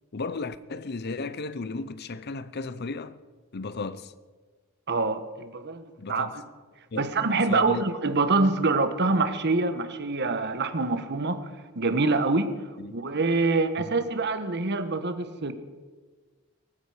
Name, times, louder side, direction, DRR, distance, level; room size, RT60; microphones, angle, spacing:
voice 1, 0.1-3.2 3.5-4.1 6.0-6.4 6.9-7.1 7.5-7.8 12.8-13.0, left 3 dB, 50° left, 0.6 m, -34 dB
voice 2, 4.9-6.3 7.0-11.5 11.7-12.5 12.9-15.5, right 3 dB, 55° right, 1.3 m, -25 dB
18.5 x 15.0 x 5.0 m
head